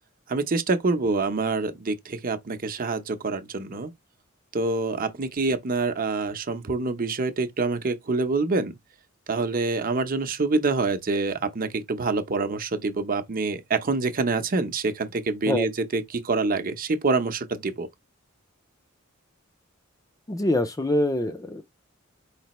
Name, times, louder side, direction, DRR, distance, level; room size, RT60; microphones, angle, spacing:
voice 1, 0.3-3.9 4.5-8.7 9.3-17.9, right 3 dB, 45° right, 0.7 m, -26 dB
voice 2, 20.3-21.6, left 1 dB, 15° left, 0.5 m, -24 dB
5.0 x 3.3 x 3.0 m
head